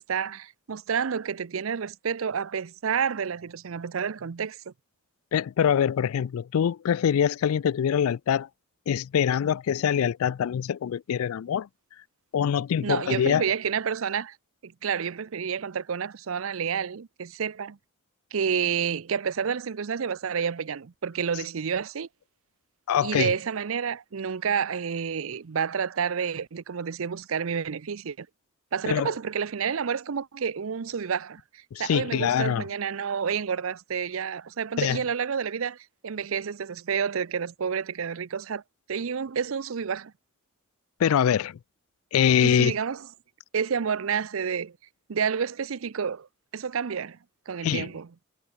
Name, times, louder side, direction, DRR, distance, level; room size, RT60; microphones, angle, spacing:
voice 1, 0.0-4.7 12.8-14.4 14.6-17.8 18.3-22.1 23.0-28.3 28.7-35.8 36.0-38.6 38.9-40.1 42.4-43.0 43.5-44.7 45.1-46.3 46.5-47.2 47.5-48.1, right 6 dB, 75° right, 0.6 m, -29 dB
voice 2, 5.3-8.5 8.9-11.7 12.3-13.4 22.9-23.3 28.9-29.1 31.7-32.6 34.8-35.0 41.0-41.6 42.1-42.7 47.6-47.9, left 8 dB, 85° left, 0.3 m, -24 dB
head